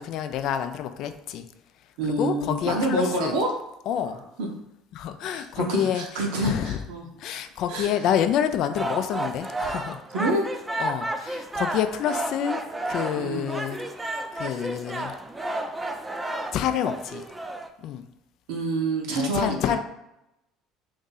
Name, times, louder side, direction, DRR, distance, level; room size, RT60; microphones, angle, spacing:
voice 1, 0.0-1.5 2.2-3.3 3.9-4.2 4.9-6.0 6.4-6.8 7.2-10.0 10.8-12.6 12.9-13.8 14.3-15.1 16.5-17.2 17.8-18.0 19.2-19.8, left 9 dB, 60° left, 9 dB, 0.3 m, -27 dB
voice 2, 2.0-3.5 4.0-4.5 5.3-7.1 7.7-7.9 10.1-10.4 13.2-13.5 18.5-19.8, right 2 dB, 70° right, 1 dB, 0.8 m, -27 dB
sound 1, 8.7-17.7, right 2 dB, 15° right, 0.4 m, -32 dB
2.6 x 2.6 x 3.8 m, 0.89 s
hypercardioid pair, 65°, 0 cm